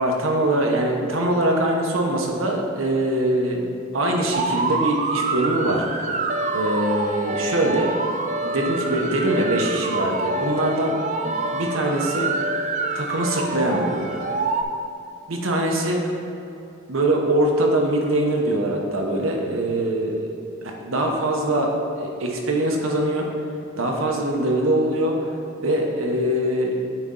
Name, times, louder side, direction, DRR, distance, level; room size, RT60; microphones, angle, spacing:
voice 1, 0.0-3.6 3.9-6.1 6.5-8.0 8.4-12.3 12.9-14.1 15.3-16.0 16.9-20.3 20.6-23.3 23.7-25.3 25.6-26.7, right 1 dB, 85° right, 1 dB, 1.0 m, -23 dB
sound 1, 4.3-14.6, right 3 dB, 35° right, 0.4 m, -26 dB
8.9 x 4.2 x 3.9 m, 2.8 s
head